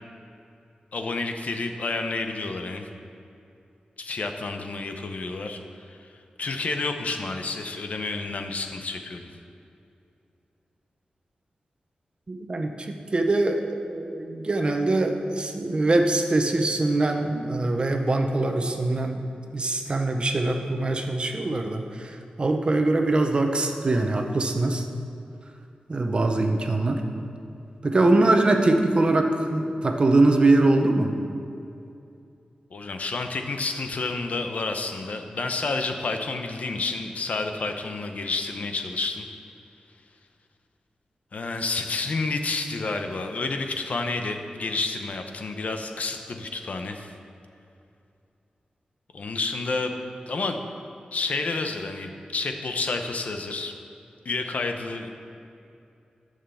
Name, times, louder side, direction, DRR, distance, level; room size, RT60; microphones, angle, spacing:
voice 1, 0.9-2.9 4.0-5.6 5.9-6.1 6.4-9.3 32.7-39.3 41.3-47.1 49.1-49.9 50.3-50.6 51.1-53.7 54.2-55.1, left 3 dB, 60° left, 5 dB, 0.9 m, -30 dB
voice 2, 12.3-19.2 19.5-24.8 25.9-27.0 27.8-31.2, right 2 dB, 40° right, 4 dB, 0.9 m, -23 dB
11.0 x 6.6 x 7.0 m, 2.6 s
wide cardioid pair, 135°, 3 cm